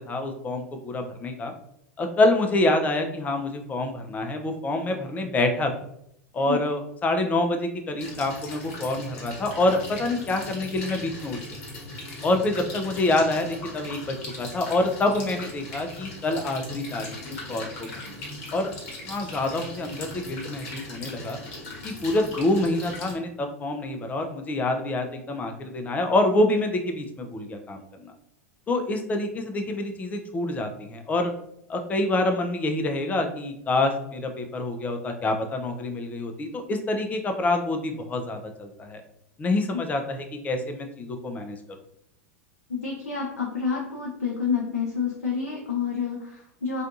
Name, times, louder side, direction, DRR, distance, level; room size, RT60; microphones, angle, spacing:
voice 1, 0.1-1.5 2.0-5.7 6.3-11.4 12.2-18.2 18.5-18.7 19.0-21.4 21.8-28.1 28.7-31.3 31.7-39.0 39.4-41.6, left 2 dB, 20° left, 5 dB, 0.4 m, -26 dB
sound 1, 8.0-23.1, left 2 dB, 50° left, 1.0 m, -39 dB
voice 2, 42.7-46.8, left 6 dB, 80° left, -3 dB, 0.5 m, -29 dB
2.5 x 2.2 x 2.5 m, 0.76 s
figure-of-eight pair, 90°, 8 cm